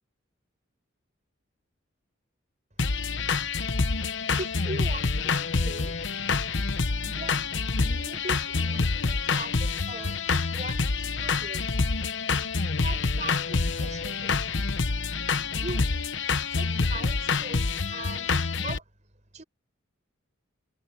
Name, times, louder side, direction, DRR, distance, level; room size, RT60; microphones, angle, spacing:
sound 1, 2.8-18.8, left 4 dB, 60° left, 1.0 m, -27 dB
voice 1, 3.4-3.7 4.3-6.0 7.0-7.5 7.8-10.2 10.5-11.8 12.7-14.4 15.5-16.1 16.4-18.9 19.3-19.4, right 2 dB, 35° right, 5.5 m, -41 dB
head